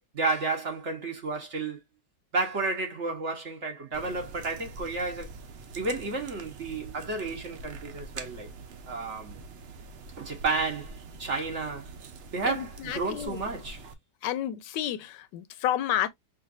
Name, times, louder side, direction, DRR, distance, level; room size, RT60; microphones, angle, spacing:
voice 1, 0.1-1.8 2.3-5.3 5.7-8.5 8.9-9.4 10.2-11.9 12.3-13.8, right 3 dB, 45° right, 1.4 m, -31 dB
sound 1, 3.9-13.9, right 3 dB, 75° right, 0.5 m, -45 dB
voice 2, 12.4-13.4 14.2-16.1, left 11 dB, 85° left, 1.2 m, -30 dB
5.7 x 2.5 x 2.5 m
omnidirectional pair, 1.9 m